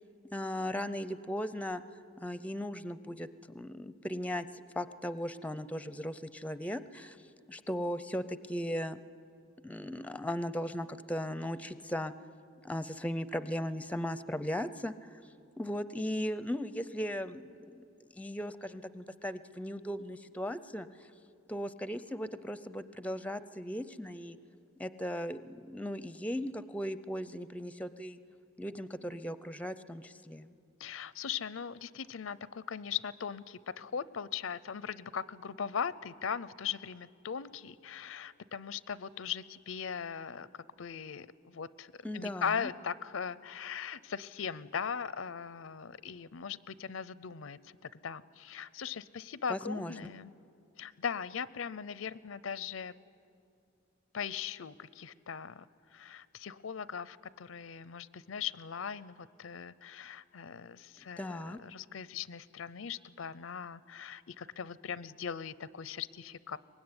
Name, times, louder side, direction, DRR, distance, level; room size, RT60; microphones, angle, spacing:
voice 1, 0.3-1.8 2.2-4.5 4.8-7.2 7.5-9.0 9.6-12.1 12.6-15.2 15.6-17.5 17.7-17.8 18.1-20.9 21.5-24.4 24.8-28.2 28.6-30.5 42.0-42.7 49.5-49.9 61.2-61.6, equal, 5° left, 14 dB, 0.5 m, -37 dB
voice 2, 30.8-40.5 40.8-50.3 50.8-52.9 54.1-66.6, left 7 dB, 85° left, 18 dB, 0.6 m, -39 dB
23.5 x 20.5 x 9.7 m, 2.5 s
head